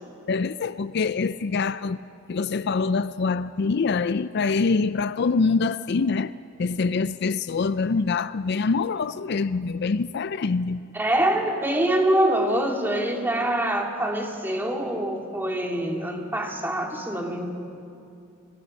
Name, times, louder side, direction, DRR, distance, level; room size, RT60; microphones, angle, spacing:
voice 1, 0.3-2.0 2.3-6.3 6.6-10.9, left 4 dB, 60° left, 0.4 m, -25 dB
voice 2, 10.9-17.5, right 1 dB, 10° right, 2.6 m, -25 dB
28.5 x 21.5 x 5.4 m
head